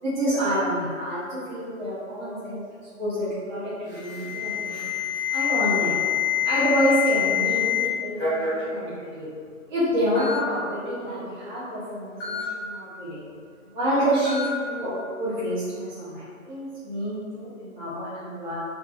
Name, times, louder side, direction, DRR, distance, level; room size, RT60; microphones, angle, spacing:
voice 1, 0.0-2.6 3.0-4.8 5.3-6.0 6.4-9.3 9.7-13.2 13.7-18.5, equal, 35° right, -12 dB, 0.5 m, -28 dB
Alarm, 3.9-7.9 8.2-8.6 9.4-9.5 10.2-10.4 12.2-12.4 14.2-14.5, left 9 dB, 15° left, 0.8 m, -26 dB
2.4 x 2.2 x 2.4 m, 2.1 s
hypercardioid pair, 165°, 41 cm